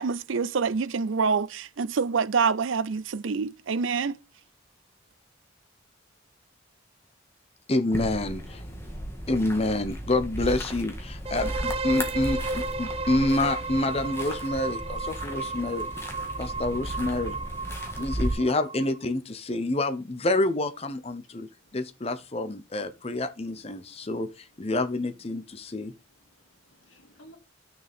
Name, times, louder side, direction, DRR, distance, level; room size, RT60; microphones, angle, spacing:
voice 1, 0.0-4.2, right 5 dB, 80° right, 0.5 m, -26 dB
voice 2, 7.7-8.6 9.3-15.9 16.4-17.4 18.0-25.9, left 2 dB, 30° left, 0.8 m, -28 dB
sound 1, 7.9-18.3, equal, 15° left, 1.7 m, -35 dB
sound 2, 11.2-19.0, right 3 dB, 30° right, 0.5 m, -33 dB
voice 3, 21.2-21.8 23.5-24.1 24.5-25.1 25.5-27.4, equal, 90° left, 2.4 m, -59 dB
11.5 x 6.6 x 3.6 m
head